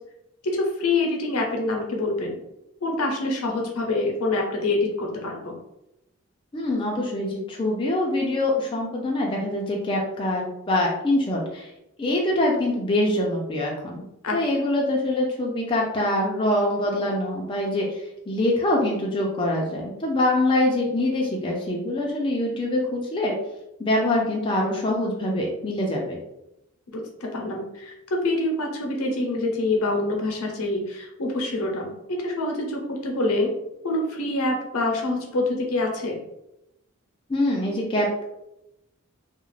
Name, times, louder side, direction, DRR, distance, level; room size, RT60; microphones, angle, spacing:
voice 1, 0.4-2.4 2.8-5.6 14.2-14.4 26.9-33.5 33.8-36.2, left 2 dB, 85° left, 1 dB, 0.6 m, -26 dB
voice 2, 6.5-11.7 12.0-14.0 14.3-17.9 18.3-23.3 23.8-26.2 37.3-38.2, left 1 dB, 25° left, -2 dB, 0.4 m, -24 dB
2.3 x 2.0 x 3.1 m, 0.87 s
head